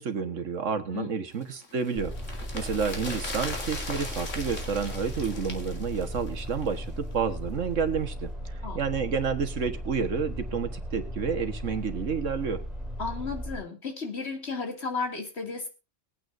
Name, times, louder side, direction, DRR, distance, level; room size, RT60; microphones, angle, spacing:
voice 1, 0.0-12.6, right 6 dB, 85° right, 9 dB, 1.8 m, -30 dB
sound 1, 1.4-6.8 7.1-7.2, left 2 dB, 85° left, 2.8 m, -39 dB
sound 2, 2.0-13.6, equal, ahead, 6.3 m, -37 dB
voice 2, 13.0-15.7, left 4 dB, 60° left, 4 dB, 2.8 m, -33 dB
21.5 x 9.3 x 2.6 m, 0.28 s
omnidirectional pair, 1.3 m